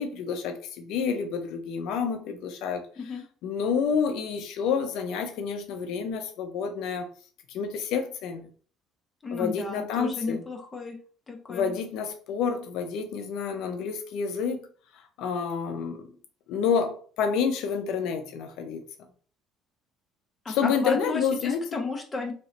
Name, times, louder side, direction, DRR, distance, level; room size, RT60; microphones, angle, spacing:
voice 1, 0.0-7.1 7.5-8.5 9.3-10.4 11.5-14.7 14.9-16.0 16.5-18.8 20.5-21.8, left 6 dB, 65° left, 0.4 m, -29 dB
voice 2, 9.2-11.0 11.3-11.6 20.4-22.3, left 3 dB, 15° left, 0.6 m, -33 dB
3.0 x 2.8 x 2.8 m
cardioid pair, 175°, 0 cm